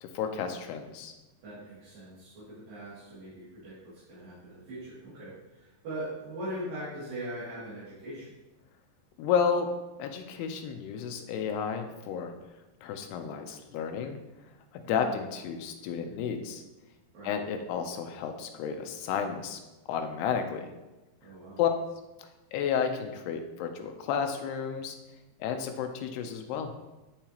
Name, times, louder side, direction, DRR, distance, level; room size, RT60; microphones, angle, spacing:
voice 1, 0.0-1.1 9.2-9.7 10.0-12.3 12.8-14.2 14.7-16.6 17.2-19.6 19.9-20.7 21.6-21.7 22.5-25.0 25.4-26.7, left 7 dB, 85° left, 5 dB, 2.7 m, -31 dB
voice 2, 1.4-8.3 14.9-15.2 17.1-17.3 21.2-21.6, right 1 dB, 60° right, -12 dB, 3.9 m, -41 dB
10.5 x 4.6 x 3.0 m, 1.1 s
omnidirectional pair, 4.6 m